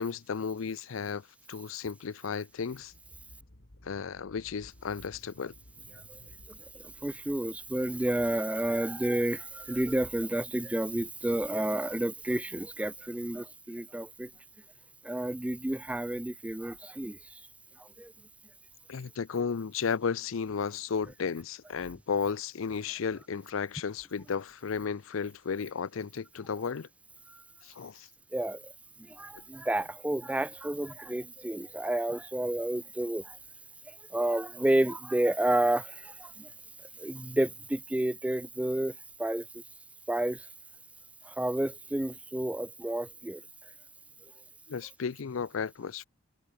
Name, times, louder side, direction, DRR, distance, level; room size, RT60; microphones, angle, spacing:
voice 1, 0.0-2.9 3.8-5.5 18.9-26.9 27.6-28.1 44.7-46.0, left 6 dB, 85° left, 0.5 m, -34 dB
sound 1, 2.5-8.9, left 1 dB, 60° left, 2.3 m, -57 dB
voice 2, 7.0-14.3 15.0-17.2 18.0-18.1 28.3-28.6 29.2-33.4 34.1-36.3 37.0-38.9 39.2-39.4 40.1-40.4 41.4-43.4, right 1 dB, 5° right, 0.3 m, -30 dB
head